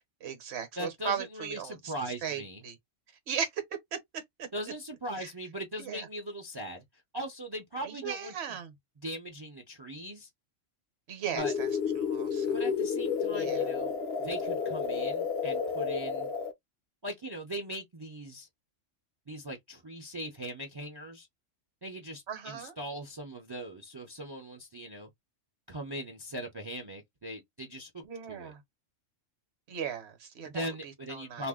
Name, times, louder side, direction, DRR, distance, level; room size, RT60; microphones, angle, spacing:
voice 1, 0.2-1.9 2.2-2.8 3.3-3.6 3.9-4.5 5.2-5.3 5.8-6.1 7.8-8.7 11.1-11.7 11.9-12.6 13.3-13.7 22.3-22.7 28.0-28.6 29.7-31.5, right 7 dB, 60° right, 1.1 m, -37 dB
voice 2, 0.8-2.6 4.5-6.8 7.1-8.6 9.0-10.3 11.3-11.5 12.5-16.3 17.0-18.5 19.3-21.3 21.8-25.1 25.7-28.0 28.3-28.5 30.4-31.5, right 1 dB, 30° right, 0.5 m, -40 dB
sound 1, 11.4-16.5, left 6 dB, 60° left, 0.8 m, -31 dB
2.6 x 2.1 x 3.5 m
omnidirectional pair, 1.3 m